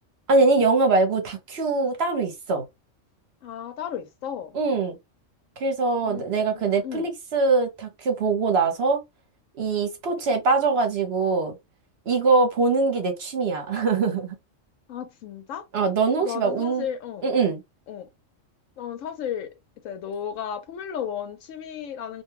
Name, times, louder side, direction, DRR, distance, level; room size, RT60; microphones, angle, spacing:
voice 1, 0.3-2.6 4.5-5.0 5.6-9.0 9.6-11.5 12.1-14.3 15.7-16.9 17.2-17.6, right 3 dB, 60° right, 1.0 m, -22 dB
voice 2, 3.4-4.6 6.0-7.0 14.9-15.7 16.2-17.3 17.9-18.1 18.8-19.5 19.8-22.2, left 8 dB, 80° left, 1.0 m, -34 dB
2.5 x 2.2 x 3.1 m
omnidirectional pair, 1.3 m